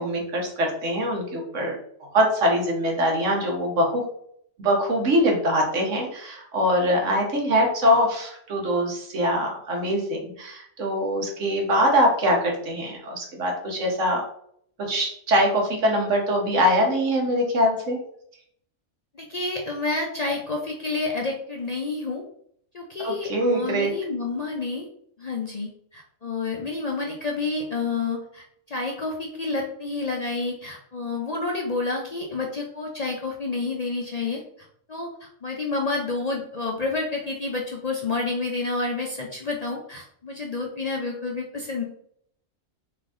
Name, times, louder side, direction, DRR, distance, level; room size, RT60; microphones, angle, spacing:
voice 1, 0.0-1.8 2.1-4.0 4.6-14.2 14.8-18.0 23.0-23.9, equal, 70° right, 1 dB, 1.4 m, -23 dB
voice 2, 19.1-22.2 22.7-24.9 25.2-35.1 35.4-41.8, left 3 dB, 45° left, -1 dB, 0.5 m, -29 dB
3.9 x 3.3 x 3.6 m, 0.66 s
omnidirectional pair, 1.4 m